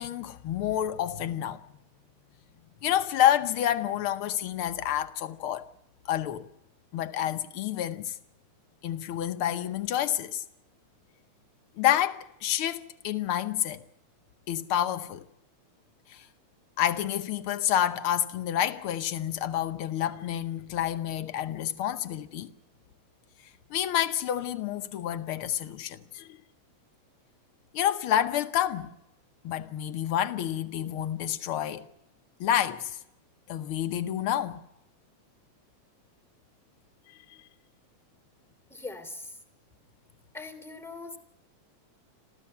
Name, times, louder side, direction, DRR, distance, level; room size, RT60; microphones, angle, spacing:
voice 1, 0.0-1.6 2.8-5.7 6.0-6.5 6.9-8.2 8.8-10.4 11.8-13.8 14.5-15.2 16.1-16.3 16.8-22.5 23.7-26.4 27.7-28.9 29.4-31.9 32.4-33.0 33.5-34.6 37.3-37.4, left 11 dB, 80° left, 1.2 m, -28 dB
voice 2, 38.7-39.4 40.3-41.2, left 3 dB, ahead, 2.2 m, -41 dB
27.5 x 15.5 x 6.7 m
omnidirectional pair, 3.6 m